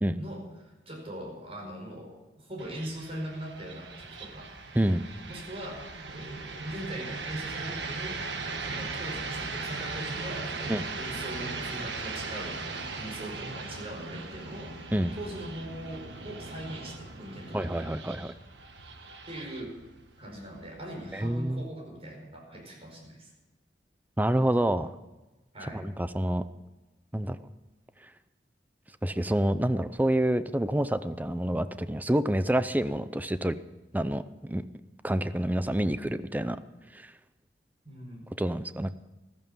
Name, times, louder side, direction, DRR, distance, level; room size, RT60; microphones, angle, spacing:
voice 1, 0.2-4.5 5.3-8.2 8.6-14.7 15.2-17.9 19.3-19.7 20.2-23.3 25.5-25.8 37.8-38.2, right 1 dB, 35° right, 0 dB, 5.0 m, -41 dB
sound 1, 2.6-21.5, right 3 dB, 85° right, 1.4 m, -39 dB
voice 2, 17.5-18.3 21.1-21.7 24.2-24.9 25.7-26.4 27.1-27.4 29.0-33.5 33.9-34.6 35.0-36.6 36.9-37.1 38.4-38.9, right 1 dB, 10° right, 13 dB, 0.5 m, -27 dB
14.5 x 13.5 x 5.5 m, 1.1 s
head